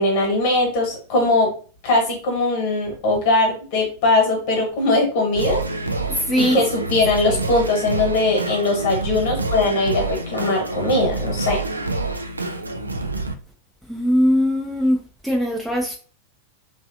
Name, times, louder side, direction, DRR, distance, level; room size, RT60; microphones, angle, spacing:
voice 1, 0.0-1.5 1.8-5.6 6.4-11.6, left 2 dB, 50° left, 1 dB, 1.3 m, -20 dB
Singing, 5.3-13.3, right 2 dB, 80° right, 0.3 m, -27 dB
voice 2, 6.1-6.6 6.9-7.0 7.3-7.4 13.9-15.0 15.2-16.0, equal, ahead, 0 dB, 0.5 m, -20 dB
3.1 x 2.5 x 2.5 m, 0.39 s
figure-of-eight pair, 90°, 0 cm